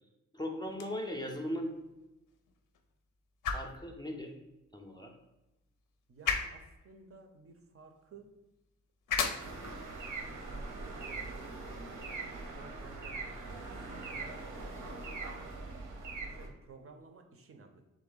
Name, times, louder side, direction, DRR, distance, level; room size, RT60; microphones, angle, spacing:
voice 1, 0.3-1.8 3.5-4.3 4.7-5.1, left 1 dB, 15° left, 2 dB, 0.4 m, -38 dB
sound 1, 0.6-12.7, left 6 dB, 85° left, 0.6 m, -41 dB
voice 2, 6.1-8.3 10.2-12.2 12.5-13.4 16.2-17.8, right 4 dB, 45° right, 5 dB, 0.5 m, -55 dB
sound 2, 9.4-16.5, right 3 dB, 85° right, 0.8 m, -42 dB
3.6 x 3.2 x 3.8 m, 0.98 s
wide cardioid pair, 140°, 31 cm